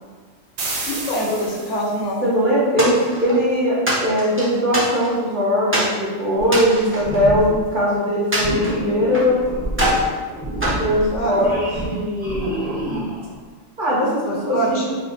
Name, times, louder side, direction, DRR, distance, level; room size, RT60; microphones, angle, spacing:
sound 1, 0.6-2.1, right 3 dB, 70° right, 0.3 m, -30 dB
voice 1, 0.9-2.3 11.1-11.5 14.3-14.9, equal, 70° left, -1 dB, 0.9 m, -24 dB
voice 2, 2.2-9.4 10.8-12.7 13.8-14.8, equal, 45° right, -7 dB, 0.9 m, -20 dB
sound 2, 2.8-3.4 3.9-5.3 5.7-6.0 6.4-7.8 8.3-9.3 9.7-10.1 10.6-11.7, equal, 15° right, 0.5 m, -24 dB
sound 3, 6.4-6.7 7.0-7.6 8.4-13.4, right 1 dB, 5° left, 0.9 m, -28 dB
3.3 x 2.4 x 3.8 m, 1.5 s
omnidirectional pair, 1.4 m